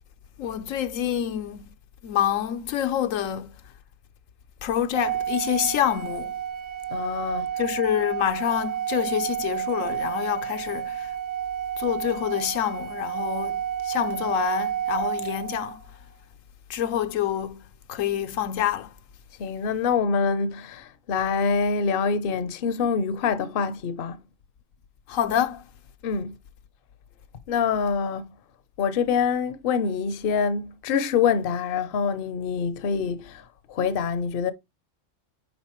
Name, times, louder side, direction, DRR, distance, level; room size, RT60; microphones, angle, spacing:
voice 1, 0.4-1.6 2.0-3.5 4.6-6.3 7.6-11.1 11.8-13.5 13.9-15.8 16.7-17.6 17.9-18.9 25.1-25.6, left 10 dB, 85° left, 1.1 m, -27 dB
Organ, 4.9-15.8, right 9 dB, 60° right, 1.4 m, -30 dB
voice 2, 6.9-7.5 19.4-24.2 26.0-26.3 27.5-28.3 28.8-33.4 33.7-34.5, left 6 dB, 55° left, 0.7 m, -25 dB
9.6 x 3.8 x 3.0 m
omnidirectional pair, 1.3 m